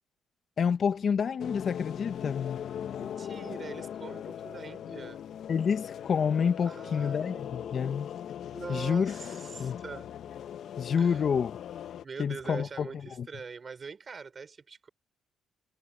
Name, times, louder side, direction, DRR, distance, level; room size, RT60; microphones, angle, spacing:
voice 1, 0.6-2.6 5.5-8.1 8.7-9.8 10.8-11.5 12.2-12.9 13.2-13.3, left 6 dB, 50° left, 1.1 m, -28 dB
sound 1, 1.4-12.0, left 9 dB, 70° left, 0.7 m, -40 dB
voice 2, 3.0-5.2 6.6-7.7 8.5-10.1 11.0-11.3 12.0-14.9, right 5 dB, 40° right, 4.2 m, -43 dB
cardioid pair, 90°, 0 cm